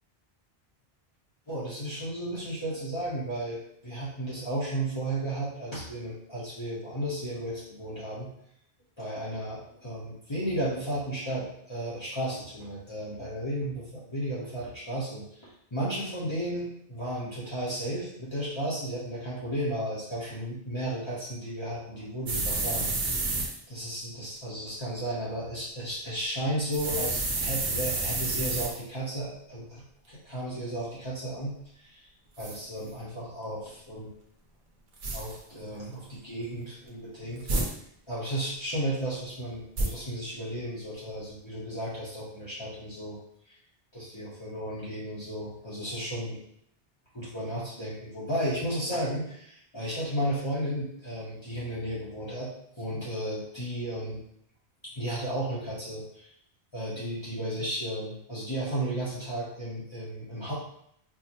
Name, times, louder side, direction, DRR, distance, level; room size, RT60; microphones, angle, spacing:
voice 1, 1.5-8.3 9.0-22.9 23.3-31.5 31.8-32.1 32.4-34.1 35.1-37.5 38.1-43.2 43.9-46.4 47.1-52.5 52.8-54.2 54.8-56.3 56.7-60.5, right 1 dB, 30° left, -10 dB, 1.0 m, -34 dB
sound 1, 22.3-23.6 26.7-28.8 32.4-32.6 35.0-35.4 37.4-37.7 39.8-39.9, right 2 dB, 55° right, 0.8 m, -29 dB
4.6 x 2.1 x 2.9 m, 0.70 s
omnidirectional pair, 1.0 m